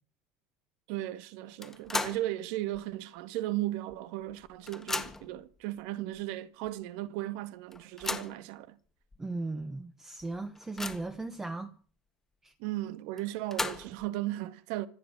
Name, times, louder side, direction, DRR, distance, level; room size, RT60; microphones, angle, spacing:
voice 1, 0.9-8.8 12.6-14.9, right 15 dB, 70° right, 1.8 m, -36 dB
sound 1, 1.6-2.3 2.7-2.8 3.9-4.0 4.3-5.4 6.2-6.3 6.7-6.8 7.7-8.4 9.1-9.2 9.6-9.7 10.2-11.2 13.2-14.1, left 3 dB, 10° left, 1.6 m, -36 dB
voice 2, 9.2-11.7 12.4-12.5, right 3 dB, 10° right, 1.3 m, -37 dB
26.0 x 9.2 x 6.1 m
cardioid pair, 150°, 4 cm